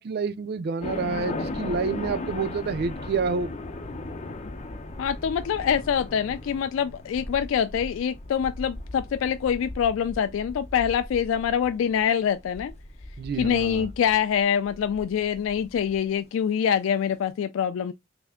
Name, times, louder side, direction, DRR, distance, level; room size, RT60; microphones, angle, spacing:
voice 1, 0.0-3.5 13.2-13.9, right 4 dB, 50° right, 0.4 m, -28 dB
sound 1, 0.8-16.0, left 2 dB, 35° left, 0.6 m, -37 dB
voice 2, 5.0-12.7 13.4-17.9, left 8 dB, 75° left, 0.3 m, -25 dB
3.3 x 2.5 x 3.6 m
head